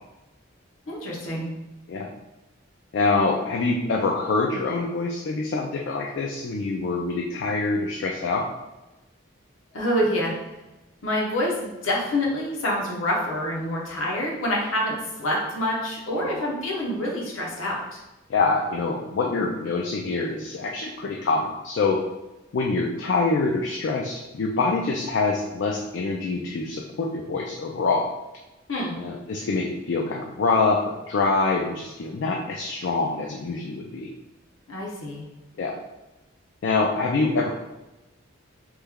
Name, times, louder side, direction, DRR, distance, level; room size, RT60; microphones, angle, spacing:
voice 1, 0.9-1.5 9.7-10.4 11.0-18.0 28.7-28.9 34.7-35.3, left 1 dB, 80° left, -3 dB, 0.9 m, -27 dB
voice 2, 2.9-8.4 16.2-16.3 18.3-22.0 22.5-28.1 29.0-34.1 35.6-35.8 36.6-37.5, left 3 dB, 60° left, 0 dB, 0.3 m, -25 dB
3.1 x 2.2 x 3.5 m, 1.0 s
head